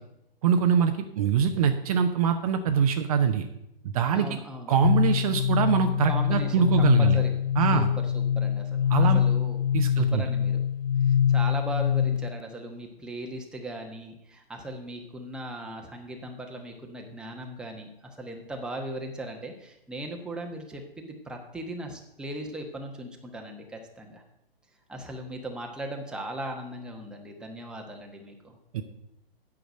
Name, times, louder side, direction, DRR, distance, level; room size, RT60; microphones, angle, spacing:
voice 1, 0.4-3.4 3.8-4.3 4.7-7.2 7.6-7.9 8.9-9.2 9.7-10.2 28.7-28.8, right 7 dB, 35° right, 6 dB, 0.8 m, -23 dB
voice 2, 4.1-4.7 6.1-7.3 7.7-9.6 10.0-10.6 11.0-24.2 24.9-28.6, right 1 dB, 5° right, 1 dB, 1.1 m, -38 dB
sound 1, 4.8-12.4, left 8 dB, 70° left, 0.4 m, -24 dB
9.2 x 6.2 x 7.7 m, 0.82 s
figure-of-eight pair, 120°, 30 cm